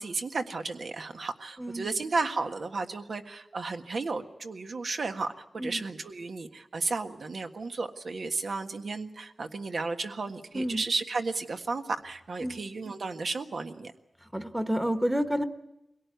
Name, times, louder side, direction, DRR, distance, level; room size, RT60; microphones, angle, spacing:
voice 1, 0.0-13.9, right 3 dB, 65° right, 6 dB, 1.6 m, -33 dB
voice 2, 1.6-1.9 5.6-5.8 10.5-10.8 12.4-12.6 14.2-15.4, equal, 5° right, 8 dB, 1.3 m, -30 dB
23.5 x 17.5 x 9.4 m, 0.91 s
wide cardioid pair, 105°, 0 cm